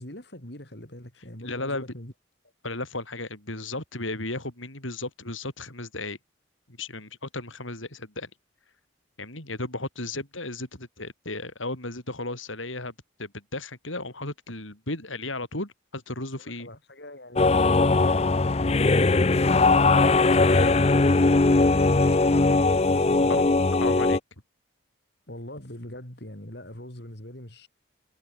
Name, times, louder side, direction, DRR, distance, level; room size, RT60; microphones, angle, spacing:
voice 1, 0.0-2.1 16.4-19.2 21.1-22.2 22.9-23.5 25.3-27.7, left 1 dB, 55° left, 5.1 m, -42 dB
voice 2, 1.4-1.8 2.6-6.2 6.7-8.3 9.2-12.9 13.2-16.7 20.5-20.7 23.3-23.4 23.8-24.2, left 2 dB, 85° left, 7.4 m, -34 dB
sound 1, 17.4-24.2, left 3 dB, 30° left, 0.6 m, -20 dB
head